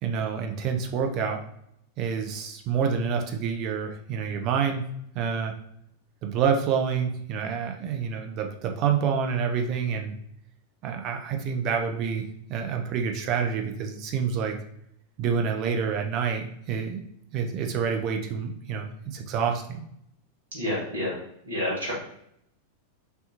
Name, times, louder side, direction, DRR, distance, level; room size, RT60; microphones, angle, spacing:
voice 1, 0.0-1.4 2.0-5.5 6.2-10.1 10.8-14.6 15.2-17.0 17.3-19.8, right 6 dB, 40° right, 4 dB, 0.7 m, -28 dB
voice 2, 20.5-21.9, left 1 dB, 65° right, -5 dB, 1.5 m, -30 dB
5.6 x 2.9 x 2.7 m, 0.73 s
figure-of-eight pair, 90°, 0 cm